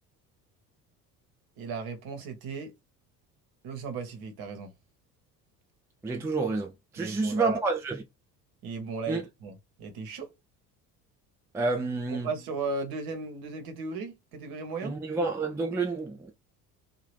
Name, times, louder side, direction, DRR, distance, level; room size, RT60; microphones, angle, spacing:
voice 1, 1.6-2.7 3.6-4.7 7.0-7.6 8.6-10.3 12.1-15.0, right 4 dB, 50° right, 1.2 m, -36 dB
voice 2, 6.0-8.0 9.1-9.2 11.5-12.3 14.8-16.3, right 3 dB, 5° right, 0.4 m, -29 dB
2.8 x 2.5 x 3.2 m
figure-of-eight pair, 60°, 49 cm